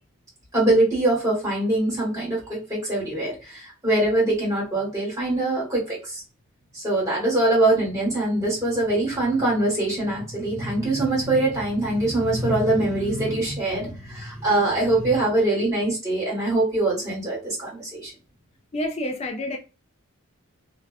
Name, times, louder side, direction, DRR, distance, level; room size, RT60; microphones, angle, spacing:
voice 1, 0.5-6.2 6.7-18.1, right 2 dB, 15° right, 1.3 m, -23 dB
voice 2, 18.7-19.6, left 1 dB, 30° left, 0.3 m, -28 dB
2.6 x 2.2 x 2.3 m
head